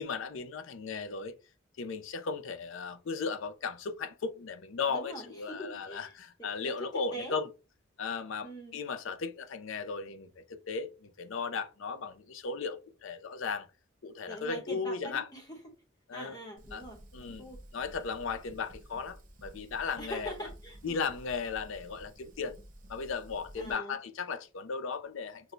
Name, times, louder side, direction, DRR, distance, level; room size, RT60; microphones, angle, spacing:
voice 1, 0.0-1.4 1.8-7.5 8.0-13.7 14.0-15.3 16.1-16.4 16.7-16.8 17.1-17.4 17.7-20.3 20.8-22.5 22.9-25.5, left 5 dB, 70° left, 0.5 m, -36 dB
voice 2, 4.9-6.1 6.4-7.4 8.4-8.8 14.3-15.7 16.1-17.6 20.0-20.9 23.6-24.0, right 1 dB, 20° left, 0.9 m, -43 dB
Fire, 16.6-23.7, equal, 40° right, 0.6 m, -52 dB
5.9 x 2.2 x 2.6 m
head